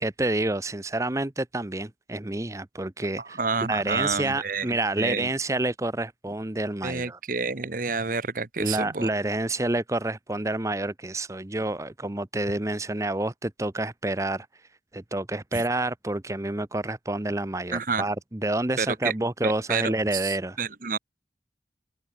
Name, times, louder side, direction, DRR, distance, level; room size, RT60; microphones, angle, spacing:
voice 1, 0.0-7.2 8.6-14.5 14.9-20.6, right 2 dB, 15° right, 0.8 m, -28 dB
voice 2, 3.2-5.3 6.8-9.1 15.5-15.6 17.7-18.0 18.8-19.1 19.4-21.0, right 5 dB, 50° right, 1.2 m, -29 dB
open air
head